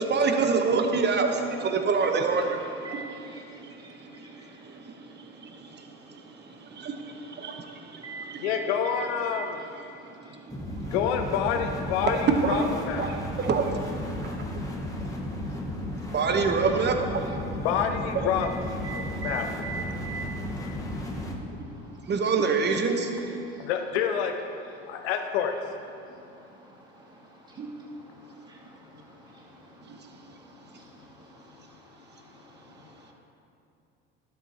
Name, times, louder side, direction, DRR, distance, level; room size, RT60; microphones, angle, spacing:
voice 1, 0.0-5.1 5.4-6.2 6.6-8.5 9.4-9.5 10.2-10.6 12.4-12.7 13.0-13.7 16.1-17.2 22.1-23.1 27.6-27.7 29.9-30.0, right 4 dB, 30° right, 5 dB, 1.0 m, -27 dB
voice 2, 2.8-3.4 3.8-3.9 4.2-4.3 8.0-8.6 8.9-9.0 9.3-9.5 18.8-20.2 28.5-28.6, right 5 dB, 15° right, -4 dB, 2.2 m, -38 dB
voice 3, 8.4-9.6 10.9-13.1 17.6-18.5 19.2-19.5 23.6-24.3 24.9-25.5, left 8 dB, 75° left, 5 dB, 0.7 m, -27 dB
sound 1, 10.5-21.3, left 1 dB, 10° left, 1.3 m, -34 dB
12.0 x 7.6 x 2.9 m, 2.6 s
hypercardioid pair, 75°, 33 cm